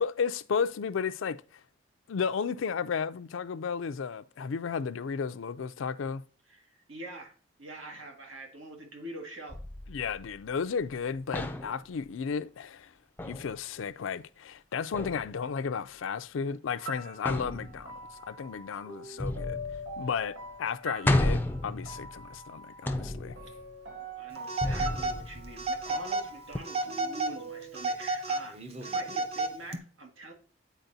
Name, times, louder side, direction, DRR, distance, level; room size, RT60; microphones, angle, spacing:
voice 1, 0.0-1.4 2.1-6.2 9.9-12.9 13.2-18.0 18.3-19.6 20.0-23.4, left 6 dB, 85° left, 0.4 m, -33 dB
voice 2, 6.5-7.3 7.6-9.6 19.0-19.2 24.1-30.3, right 2 dB, 90° right, 1.7 m, -45 dB
sound 1, 9.5-11.0 11.3-11.9 13.2-13.5 14.9-15.3 17.2-18.1 19.2-20.2 20.5-20.6 21.0-22.4 22.9-23.6 24.6-26.0 26.5-26.6, left 1 dB, 10° left, 0.4 m, -32 dB
sound 2, 16.7-27.8, right 1 dB, 75° right, 1.9 m, -44 dB
Telephone, 24.5-25.2 25.6-26.3 26.7-27.4 27.7-29.8, right 3 dB, 30° right, 0.6 m, -32 dB
9.1 x 4.4 x 2.7 m
head